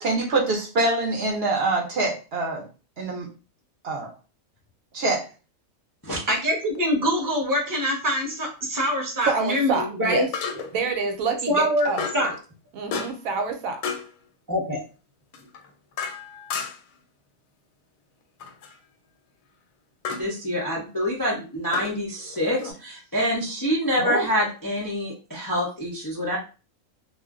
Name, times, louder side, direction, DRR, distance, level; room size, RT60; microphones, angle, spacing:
voice 1, 0.0-2.7 3.0-3.3 3.8-4.1 4.9-5.2, right 2 dB, 60° right, 0 dB, 0.7 m, -24 dB
voice 2, 6.3-10.3 11.5-12.3 14.5-14.8, equal, 20° right, 0 dB, 0.7 m, -24 dB
sound 1, 6.6-6.8 10.3-10.9 12.0-12.3 12.9-13.3 13.8-14.1 15.3-17.0 18.4-18.8 20.0-20.3 21.7-22.7, left 6 dB, 80° left, 1.0 m, -33 dB
voice 3, 9.3-10.3 10.7-12.0 12.7-13.8 22.6-22.7 24.0-24.3, right 4 dB, 85° right, 5 dB, 1.1 m, -27 dB
voice 4, 20.2-26.4, equal, 30° left, -4 dB, 0.4 m, -26 dB
2.4 x 2.0 x 3.5 m, 0.34 s
omnidirectional pair, 1.4 m